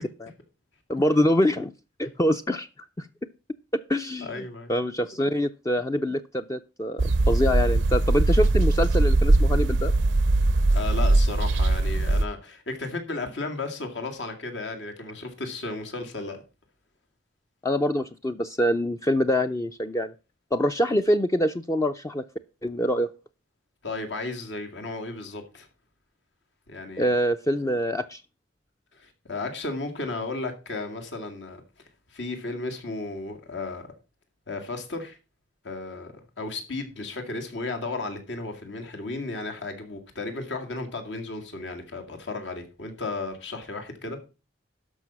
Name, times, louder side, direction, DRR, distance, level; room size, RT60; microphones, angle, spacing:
voice 1, 0.9-1.7 2.0-2.7 3.0-3.1 3.9-9.9 17.6-20.1 20.5-22.2 22.6-23.1 27.0-28.2, equal, 15° left, 0.4 m, -25 dB
voice 2, 4.2-4.7 10.7-16.4 23.8-25.7 26.7-27.0 28.9-31.6 32.1-33.8 34.5-35.2 35.6-44.2, left 3 dB, 75° left, 2.2 m, -34 dB
sound 1, 7.0-12.2, right 2 dB, 85° right, 0.6 m, -21 dB
12.5 x 5.4 x 5.8 m
head